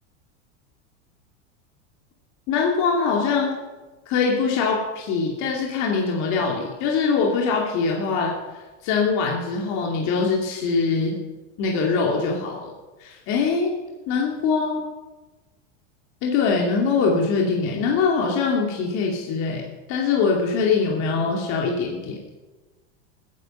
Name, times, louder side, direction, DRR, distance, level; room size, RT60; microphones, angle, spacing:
voice 1, 2.5-3.5 4.1-8.3 8.8-11.2 11.6-12.7 13.0-13.7 14.1-14.8 16.2-19.6 19.9-22.2, left 5 dB, 50° left, -1 dB, 2.7 m, -23 dB
20.0 x 9.8 x 5.4 m, 1.2 s
supercardioid pair, 125°, 36 cm